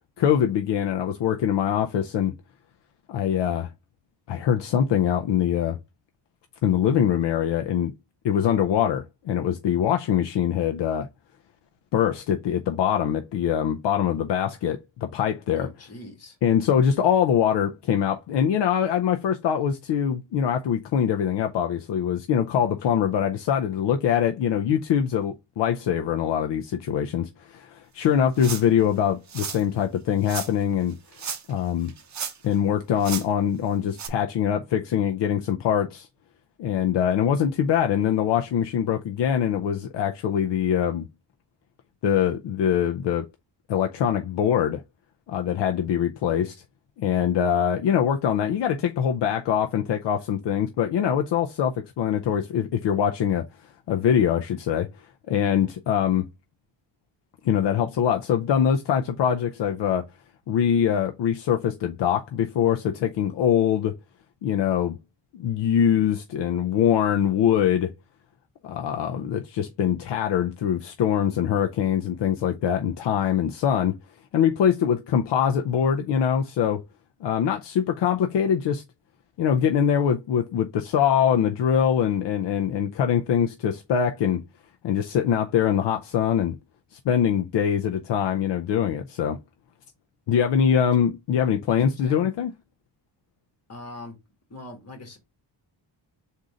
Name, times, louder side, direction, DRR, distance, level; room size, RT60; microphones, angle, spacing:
voice 1, 0.2-2.4 3.1-3.7 4.3-5.8 6.6-7.9 8.2-11.1 11.9-15.7 16.4-31.0 31.5-31.9 32.4-36.1 36.6-41.1 42.0-43.3 43.7-44.8 45.3-46.5 47.0-53.5 53.9-54.9 55.3-56.2 57.4-60.1 60.5-64.0 64.4-65.0 65.3-67.9 68.6-74.0 74.3-76.8 77.2-78.8 79.4-84.4 84.8-86.6 87.1-89.4 90.3-92.5, left 9 dB, 70° left, 0.6 m, -23 dB
voice 2, 15.5-16.4 91.7-92.2 93.7-94.1 94.5-95.2, left 1 dB, 35° left, 1.6 m, -42 dB
sound 1, 28.4-28.8 29.3-29.6 30.3-30.5 31.1-31.6 31.9-32.6 33.0-33.3 33.9-34.1, right 7 dB, 40° right, 0.7 m, -33 dB
3.8 x 2.7 x 4.8 m
wide cardioid pair, 165°, 44 cm